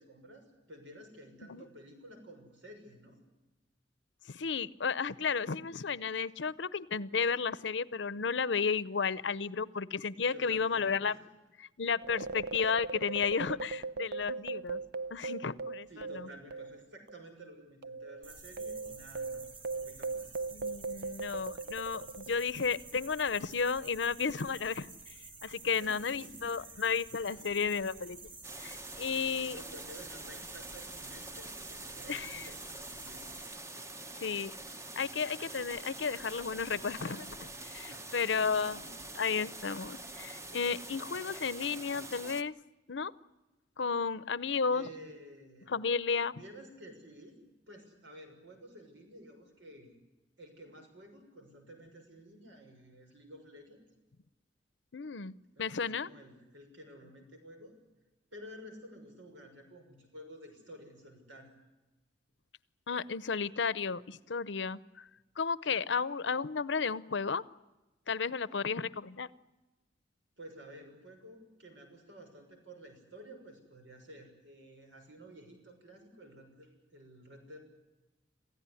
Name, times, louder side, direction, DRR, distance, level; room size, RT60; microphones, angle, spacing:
voice 1, 0.0-3.2 10.3-11.3 15.9-19.5 19.7-20.4 25.6-26.8 27.3-27.7 29.3-33.2 37.8-39.0 44.7-45.7 46.4-47.4 47.7-50.0 50.4-53.8 55.6-57.7 58.3-61.5 70.4-77.6, equal, 90° right, 5 dB, 6.4 m, -52 dB
voice 2, 4.3-11.1 11.6-14.8 15.1-15.9 16.1-16.3 20.5-25.1 25.4-28.3 28.6-29.6 32.1-32.5 34.2-34.5 35.0-38.8 39.2-42.5 42.9-43.1 43.8-44.8 45.7-46.4 54.9-56.1 62.9-65.1 65.4-67.4 68.1-69.3, left 5 dB, 70° left, 18 dB, 0.7 m, -33 dB
sound 1, 12.0-16.8 17.1-17.2 17.8-22.6, right 3 dB, 60° right, 0.8 m, -39 dB
sound 2, 18.2-33.5, right 3 dB, 30° right, 7.5 m, -51 dB
sound 3, 28.4-42.4, right 2 dB, 15° right, 0.8 m, -45 dB
27.5 x 15.5 x 9.9 m, 1.1 s
head